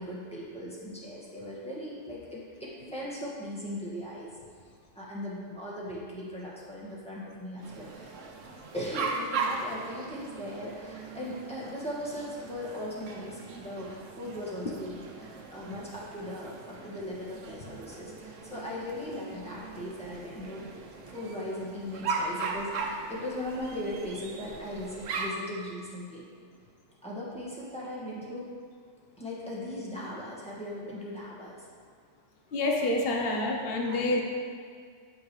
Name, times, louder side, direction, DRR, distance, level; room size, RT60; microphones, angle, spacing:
voice 1, 0.0-4.3 4.9-8.2 8.7-20.7 21.0-26.3 27.0-28.5 29.2-31.6 33.9-34.2, left 1 dB, 5° left, -7 dB, 1.7 m, -38 dB
sound 1, 7.6-25.3, right 4 dB, 80° right, 1.1 m, -38 dB
voice 2, 32.5-34.2, left 2 dB, 55° left, 0 dB, 1.1 m, -27 dB
12.0 x 5.3 x 3.2 m, 2.1 s
omnidirectional pair, 1.3 m